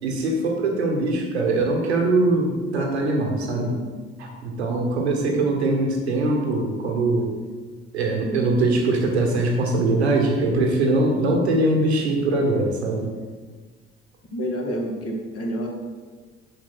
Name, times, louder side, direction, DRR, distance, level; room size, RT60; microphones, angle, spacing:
voice 1, 0.0-3.7 4.2-7.3 7.9-13.0, right 2 dB, 85° right, 1 dB, 1.2 m, -22 dB
voice 2, 14.3-15.7, equal, 50° left, 0 dB, 1.8 m, -28 dB
7.0 x 5.2 x 6.0 m, 1.4 s
hypercardioid pair, 50°, 32 cm